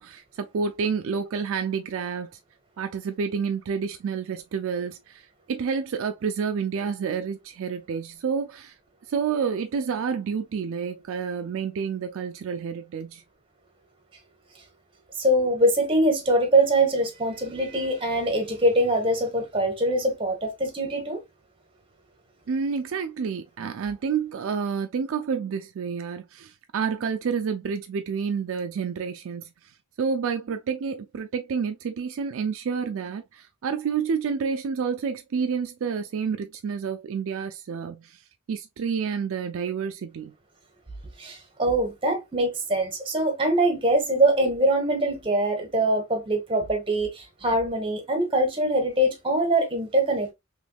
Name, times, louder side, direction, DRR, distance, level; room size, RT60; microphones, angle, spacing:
voice 1, 0.0-2.3 2.8-8.7 9.1-13.2 22.5-29.5 30.0-38.2 38.5-40.3, right 6 dB, 65° right, 0.4 m, -29 dB
voice 2, 15.2-21.2 41.2-50.3, right 1 dB, 25° right, 1.1 m, -23 dB
3.4 x 3.1 x 2.2 m
head